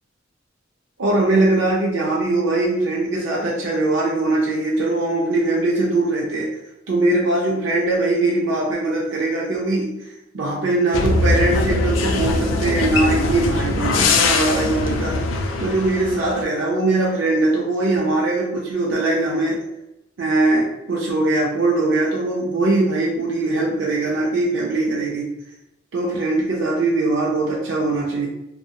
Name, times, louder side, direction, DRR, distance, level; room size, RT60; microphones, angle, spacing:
voice 1, 1.0-6.5 6.9-9.9 10.3-15.2 15.6-19.6 20.2-25.3 25.9-28.3, right 2 dB, 75° right, -4 dB, 0.5 m, -21 dB
sound 1, 10.9-16.4, left 3 dB, 75° left, 0.3 m, -21 dB
2.6 x 2.0 x 2.3 m, 0.89 s
head